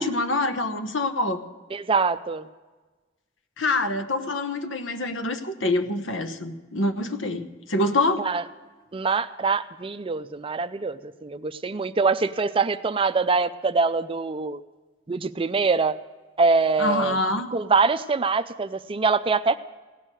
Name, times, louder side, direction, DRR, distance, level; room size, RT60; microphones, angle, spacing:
voice 1, 0.0-1.4 3.6-8.2 16.8-17.5, left 2 dB, 75° left, 8 dB, 1.1 m, -26 dB
voice 2, 1.7-2.5 8.2-8.4 8.9-14.6 15.1-16.0 16.4-17.2 17.5-19.6, right 4 dB, 30° right, 12 dB, 0.4 m, -24 dB
17.0 x 6.4 x 8.9 m, 1.3 s
head